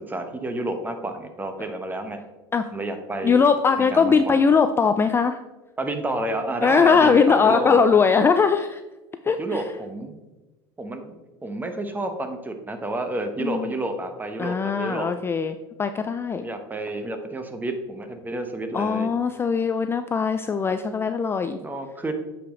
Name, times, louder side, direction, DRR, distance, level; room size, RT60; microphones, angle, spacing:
voice 1, 0.1-2.2 2.7-3.4 3.9-4.4 5.8-7.8 9.4-10.1 10.8-15.1 16.3-19.1 21.6-22.1, right 2 dB, 15° right, 7 dB, 1.1 m, -30 dB
voice 2, 3.2-5.4 6.6-8.8 9.2-9.6 13.4-13.7 14.4-16.4 18.7-21.6, left 5 dB, 20° left, 9 dB, 0.4 m, -20 dB
8.7 x 5.1 x 3.8 m, 1.1 s
supercardioid pair, 105°, 12 cm